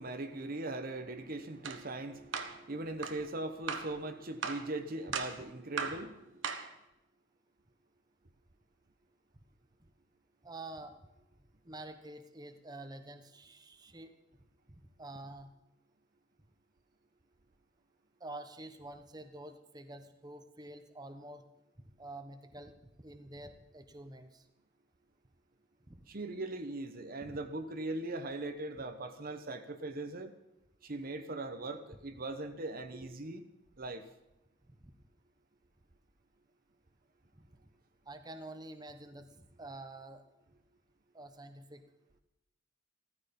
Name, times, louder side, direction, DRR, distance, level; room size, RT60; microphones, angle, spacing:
voice 1, 0.0-6.4 26.1-30.3 30.8-33.4 33.8-34.0, right 2 dB, 50° right, 8 dB, 1.1 m, -40 dB
sound 1, 1.6-1.8 2.3-2.6 3.0-3.2 3.7-3.9 4.4-4.7 5.1-5.4 5.8-6.0 6.4-6.7, right 5 dB, 85° right, 1.5 m, -37 dB
voice 2, 10.4-11.0 11.6-14.1 14.7-15.5 18.2-21.4 22.0-24.4 25.9-26.0 27.2-27.4 34.7-34.9 38.1-40.2 41.1-41.8, right 2 dB, 20° right, 7 dB, 1.2 m, -48 dB
15.0 x 14.5 x 5.4 m, 0.90 s
head